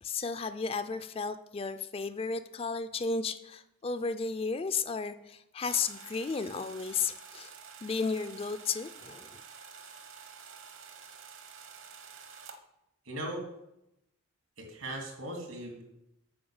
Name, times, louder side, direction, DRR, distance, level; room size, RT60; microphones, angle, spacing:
voice 1, 0.0-7.5 7.8-9.4, left 5 dB, 25° left, 11 dB, 0.3 m, -33 dB
sound 1, 5.6-12.6, right 6 dB, 65° right, 1.1 m, -49 dB
voice 2, 13.0-13.5 14.6-15.8, right 1 dB, 80° right, 2 dB, 2.6 m, -38 dB
8.7 x 5.3 x 7.1 m, 0.86 s
head